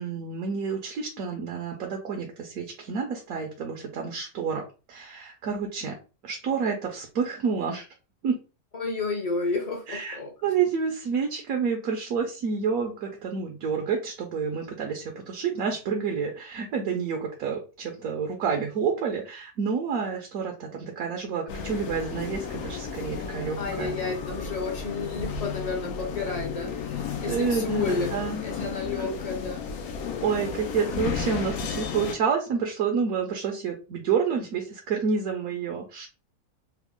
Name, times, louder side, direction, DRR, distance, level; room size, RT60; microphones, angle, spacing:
voice 1, 0.0-5.9 6.2-7.9 8.2-8.4 9.9-23.9 27.1-29.2 30.2-36.1, right 6 dB, 75° right, 1 dB, 1.1 m, -29 dB
voice 2, 8.7-10.3 23.6-28.1 28.4-29.6, left 3 dB, 40° left, 3 dB, 0.5 m, -31 dB
sound 1, 21.5-32.2, left 6 dB, 90° left, 1.1 m, -33 dB
3.4 x 2.0 x 3.6 m, 0.32 s
omnidirectional pair, 1.5 m